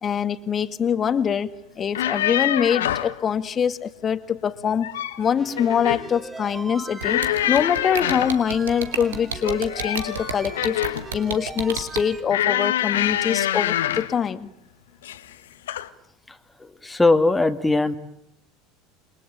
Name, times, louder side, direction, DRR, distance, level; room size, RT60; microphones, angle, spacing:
voice 1, 0.0-10.8 11.1-14.5, left 7 dB, 35° left, 11 dB, 1.9 m, -24 dB
sound 1, 1.8-3.2 4.6-5.2 5.6-6.1 7.0-8.4 9.4-11.1 12.3-14.2 15.0-15.3 15.7-15.9, left 12 dB, 75° left, 1.4 m, -25 dB
sound 2, 5.4-12.2, right 3 dB, 25° right, 3.8 m, -40 dB
sound 3, 7.0-12.0, right 6 dB, 80° right, 3.1 m, -30 dB
voice 2, 16.8-18.0, left 2 dB, 10° left, 6 dB, 2.2 m, -19 dB
28.5 x 22.5 x 8.9 m, 0.76 s
hypercardioid pair, 75°, 0 cm